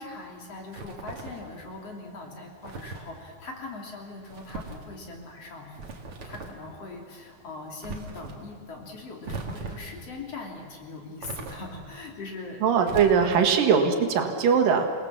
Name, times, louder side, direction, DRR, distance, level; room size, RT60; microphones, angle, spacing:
voice 1, 0.0-12.9 13.2-13.5, left 3 dB, 45° left, 1 dB, 3.8 m, -41 dB
sound 1, 0.7-1.5 2.6-3.1 4.3-4.9 5.7-6.6 7.8-8.4 9.2-10.0 11.2-11.9 12.8-13.5, right 3 dB, 45° right, 2.6 m, -39 dB
voice 2, 12.6-14.9, right 6 dB, 80° right, 5 dB, 3.3 m, -21 dB
28.5 x 18.5 x 7.3 m, 2.2 s
omnidirectional pair, 3.9 m